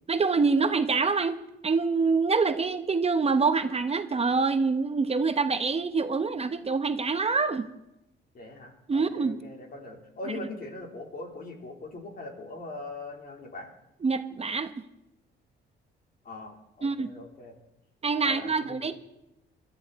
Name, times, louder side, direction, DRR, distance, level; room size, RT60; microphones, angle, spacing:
voice 1, 0.1-1.4 1.6-7.7 8.9-9.4 14.0-14.7 16.8-17.1 18.0-18.9, right 4 dB, 30° right, 9 dB, 0.9 m, -25 dB
voice 2, 8.3-13.7 16.2-17.5 18.2-18.9, left 2 dB, 50° left, 2 dB, 3.7 m, -41 dB
21.5 x 13.5 x 4.2 m, 0.87 s
cardioid pair, 90°, 20 cm